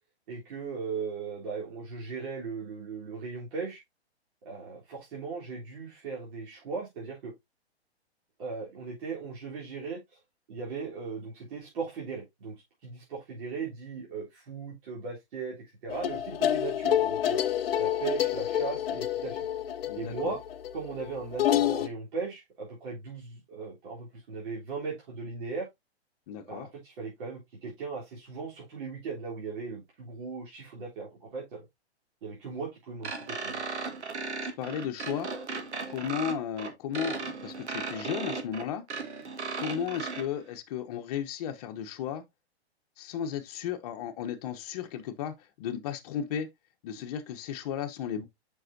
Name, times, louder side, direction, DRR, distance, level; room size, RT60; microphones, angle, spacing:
voice 1, 0.3-3.8 4.4-7.3 8.4-10.2 10.5-17.4 17.8-19.4 20.0-20.4 20.7-25.7 26.5-31.7 32.2-33.6, right 5 dB, 50° right, 3.6 m, -38 dB
sound 1, 15.9-21.9, left 10 dB, 60° left, 0.9 m, -28 dB
voice 2, 19.9-20.3 26.3-26.7 34.6-35.3 35.9-38.9 39.6-42.2 43.0-46.5 46.8-48.3, left 8 dB, 35° left, 1.0 m, -34 dB
sound 2, 33.0-40.2, right 4 dB, 85° right, 1.8 m, -36 dB
7.7 x 5.7 x 2.7 m
hypercardioid pair, 150°, 33 cm